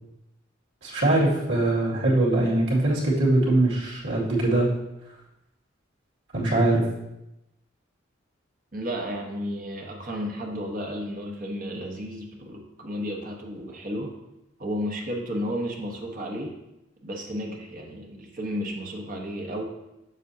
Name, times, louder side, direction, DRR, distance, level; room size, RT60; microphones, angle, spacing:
voice 1, 0.8-4.7 6.3-6.9, right 2 dB, 85° right, -5 dB, 2.4 m, -22 dB
voice 2, 8.7-14.1 14.6-16.5 17.0-19.6, equal, 45° right, 0 dB, 1.2 m, -33 dB
7.4 x 6.8 x 2.8 m, 0.91 s
head